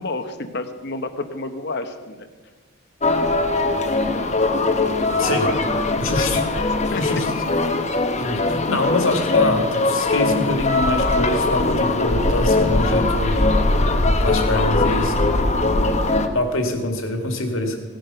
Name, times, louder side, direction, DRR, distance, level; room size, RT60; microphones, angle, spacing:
voice 1, 0.0-2.3 6.9-7.2 14.5-15.3, left 2 dB, 50° left, 8 dB, 1.1 m, -30 dB
sound 1, 3.0-16.3, left 2 dB, 30° left, 1.0 m, -20 dB
voice 2, 5.2-5.5 6.0-6.4 6.9-7.3 8.2-13.4 14.2-15.1 16.3-17.8, left 2 dB, 70° left, 4 dB, 2.3 m, -24 dB
18.0 x 10.5 x 5.8 m, 1.4 s
head